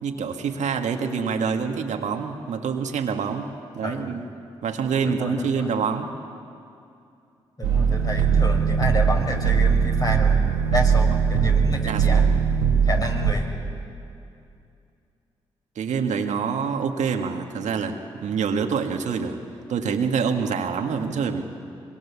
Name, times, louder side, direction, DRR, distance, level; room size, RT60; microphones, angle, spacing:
voice 1, 0.0-4.2 4.6-6.1 11.1-11.2 11.8-12.3 15.7-19.4 19.7-21.4, right 6 dB, 70° right, 4 dB, 1.8 m, -26 dB
voice 2, 3.8-4.2 5.0-5.7 7.6-10.4 10.7-12.2 12.8-13.4, left 1 dB, 30° left, 2 dB, 5.3 m, -29 dB
sound 1, 7.6-13.3, right 6 dB, 90° right, 1.8 m, -20 dB
26.0 x 22.5 x 7.2 m, 2.5 s
hypercardioid pair, 40°, 13 cm